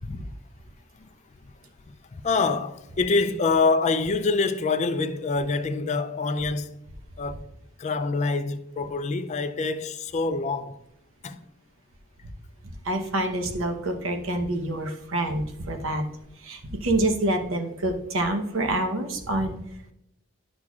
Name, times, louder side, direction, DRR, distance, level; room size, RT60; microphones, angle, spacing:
voice 1, 2.1-6.7 7.2-7.4 7.8-10.8 11.2-11.4, left 4 dB, 35° left, 0.3 m, -26 dB
voice 2, 12.8-16.0 16.4-19.6, right 1 dB, 70° right, 0.9 m, -27 dB
9.6 x 6.3 x 2.4 m
head